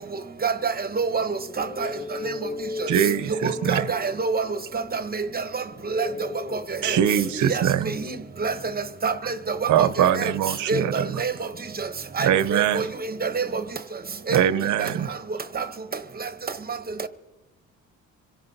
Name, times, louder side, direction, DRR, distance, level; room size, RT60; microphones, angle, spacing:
voice 1, 0.4-1.9 2.2-2.3 2.8-2.9 3.4-4.5 4.9-5.3 5.5-5.6 5.9-6.1 6.8-6.9 7.5-7.6 8.4-8.5 9.0-9.3 9.8-9.9 10.2-10.3 10.7-11.3 12.2-12.8 13.2-13.6 14.3-14.4 14.8-14.9 15.6-15.7, right 4 dB, 30° right, 0.9 m, -26 dB
voice 2, 1.4-4.1 5.7-7.3 8.0-8.2, left 4 dB, 30° left, 3.4 m, -36 dB
voice 3, 2.9-3.9 6.8-7.9 9.2-9.3 9.7-11.2 12.2-12.9 14.3-15.1, right 10 dB, 75° right, 0.8 m, -22 dB
26.0 x 17.5 x 2.7 m
cardioid pair, 90°, 30 cm